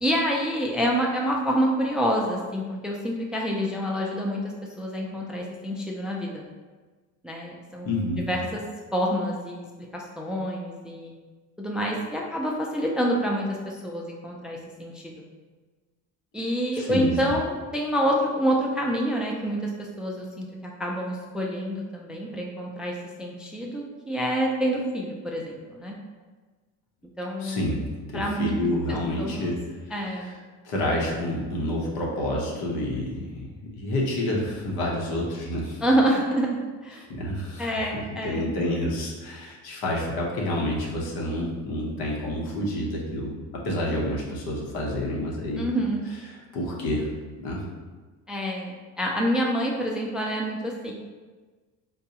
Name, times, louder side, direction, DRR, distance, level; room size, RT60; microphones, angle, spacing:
voice 1, 0.0-4.4 4.8-6.4 7.2-7.9 8.3-8.6 8.9-9.6 9.9-11.1 11.6-15.2 16.3-26.0 27.2-27.7 28.1-28.5 28.9-29.5 29.9-30.3 35.8-37.1 37.6-38.5 45.6-46.0 48.3-50.9, equal, ahead, -1 dB, 0.3 m, -27 dB
voice 2, 7.8-8.2 16.7-17.1 27.4-29.6 29.9-30.3 30.6-35.8 36.9-37.7 38.2-45.7 46.3-47.1 47.4-47.6, left 1 dB, 80° left, -2 dB, 0.9 m, -29 dB
3.9 x 2.3 x 2.8 m, 1.4 s
cardioid pair, 90°, 36 cm